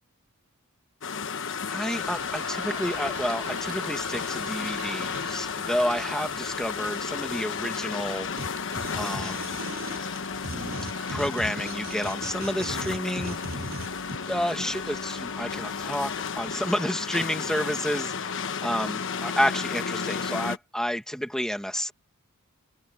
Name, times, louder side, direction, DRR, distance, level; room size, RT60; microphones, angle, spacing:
sound 1, 1.0-20.6, left 6 dB, 60° left, 1.2 m, -33 dB
voice 1, 1.7-8.3 8.9-9.5 11.1-13.4 14.3-21.9, equal, 5° left, 2.0 m, -30 dB
sound 2, 2.0-16.7, right 6 dB, 90° right, 4.7 m, -47 dB
sound 3, 8.4-8.5 8.7-14.2, right 1 dB, 45° right, 7.5 m, -37 dB
head